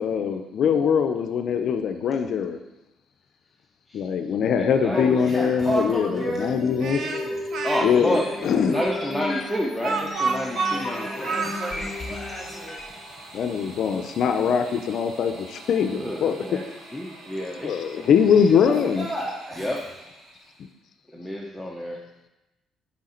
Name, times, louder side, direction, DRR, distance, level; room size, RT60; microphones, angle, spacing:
voice 1, 0.0-2.6 3.9-7.0 7.8-8.8 13.3-16.4 17.6-19.1, left 7 dB, 55° left, 7 dB, 0.5 m, -22 dB
voice 2, 3.9-5.2 5.9-6.3 7.6-11.4 15.9-16.7 16.9-18.1 19.6-19.9 21.1-22.0, left 1 dB, 5° left, -2 dB, 0.6 m, -30 dB
voice 3, 4.9-6.6 6.9-7.4 8.0-8.8 10.4-12.8 18.6-19.7, equal, 25° right, -6 dB, 2.7 m, -33 dB
sound 1, 5.9-13.1, left 2 dB, 25° left, 1.0 m, -34 dB
Speech, 6.8-7.9 8.7-11.7, right 4 dB, 55° right, 0.7 m, -28 dB
sound 2, 9.6-20.7, right 2 dB, 80° right, 1.6 m, -45 dB
6.3 x 5.7 x 4.3 m, 0.98 s
cardioid pair, 140°, 0 cm